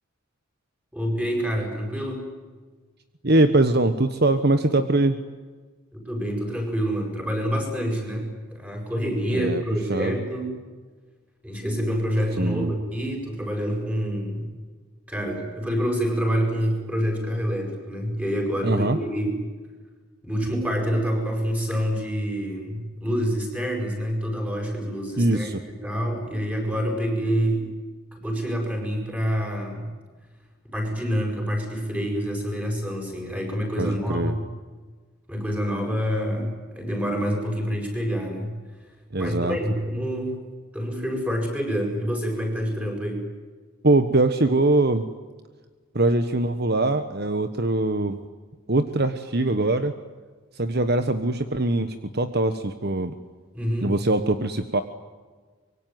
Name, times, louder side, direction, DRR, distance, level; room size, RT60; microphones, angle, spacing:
voice 1, 0.9-2.2 5.9-10.5 11.4-14.5 15.1-19.4 20.2-25.5 25.8-27.7 28.2-29.9 30.7-34.5 35.3-38.6 39.2-40.4 40.7-43.3 53.5-53.9, equal, 5° right, 1 dB, 7.6 m, -27 dB
voice 2, 3.2-5.2 9.3-9.6 9.9-10.2 12.4-12.7 18.6-19.0 25.2-25.6 33.8-34.4 39.1-39.6 43.8-45.1 45.9-48.2 48.7-49.9 50.6-53.1 53.8-54.8, right 2 dB, 50° right, 9 dB, 1.3 m, -22 dB
25.0 x 23.5 x 9.4 m, 1.4 s
head